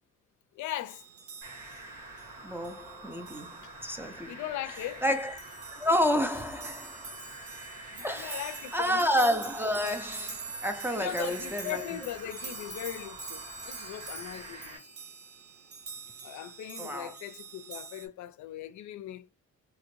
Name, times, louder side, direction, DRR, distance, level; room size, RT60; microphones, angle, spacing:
voice 1, 0.5-1.0 3.6-3.8 4.3-5.0 7.9-9.0 10.9-14.9 16.2-19.3, left 12 dB, 70° left, 0.4 m, -39 dB
sound 1, 0.9-18.1, right 4 dB, 50° right, 0.9 m, -45 dB
sound 2, 1.4-14.8, right 2 dB, 75° right, 1.6 m, -47 dB
voice 2, 2.4-4.3 5.0-5.3 5.7-7.1 8.0-11.8 16.8-17.1, equal, 10° right, 0.4 m, -30 dB
2.8 x 2.5 x 3.0 m
cardioid pair, 90°, 30 cm